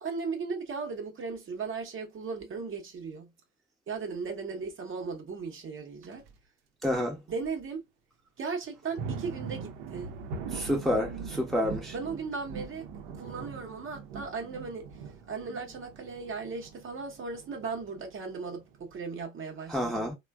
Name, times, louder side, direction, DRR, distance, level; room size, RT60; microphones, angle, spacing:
voice 1, 0.0-3.3 3.9-6.2 7.3-7.8 8.4-10.1 11.9-12.9 13.2-14.9 15.3-20.1, right 4 dB, 30° right, 0.8 m, -37 dB
sound 1, 6.0-6.3 6.9-7.0 7.4-7.5 8.7-19.0, right 5 dB, 60° right, 0.7 m, -42 dB
voice 2, 6.8-7.2 10.5-11.9 15.5-15.6 19.7-20.1, equal, ahead, 0.7 m, -29 dB
3.1 x 2.2 x 2.2 m
figure-of-eight pair, 60°, 39 cm